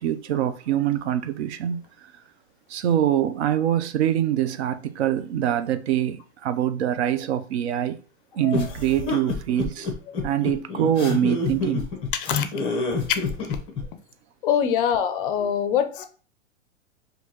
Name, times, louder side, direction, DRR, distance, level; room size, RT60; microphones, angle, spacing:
voice 1, 0.0-1.8 2.7-8.0 8.4-9.9 10.2-11.9 14.6-14.7, right 10 dB, 60° right, 0.5 m, -24 dB
sound 1, 8.5-13.8, left 4 dB, 15° left, 0.8 m, -27 dB
voice 2, 12.1-12.5 13.5-13.6 14.4-16.1, left 9 dB, 45° left, 0.5 m, -24 dB
4.4 x 2.6 x 2.8 m
hypercardioid pair, 150°, 38 cm